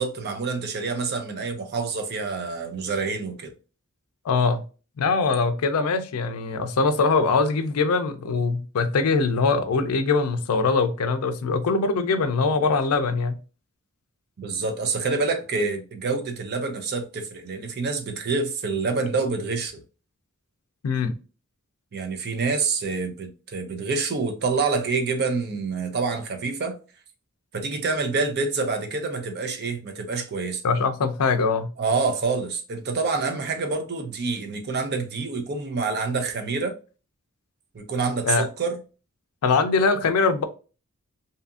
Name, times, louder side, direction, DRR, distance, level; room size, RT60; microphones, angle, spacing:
voice 1, 0.0-3.5 14.4-19.8 21.9-26.8 27.5-30.6 31.8-36.7 37.7-38.8, right 4 dB, 45° right, 0.5 m, -27 dB
voice 2, 4.3-4.6 5.0-13.3 20.8-21.1 30.6-31.7 38.3-38.5 39.4-40.4, left 4 dB, 70° left, 0.4 m, -22 dB
2.7 x 2.5 x 2.3 m
head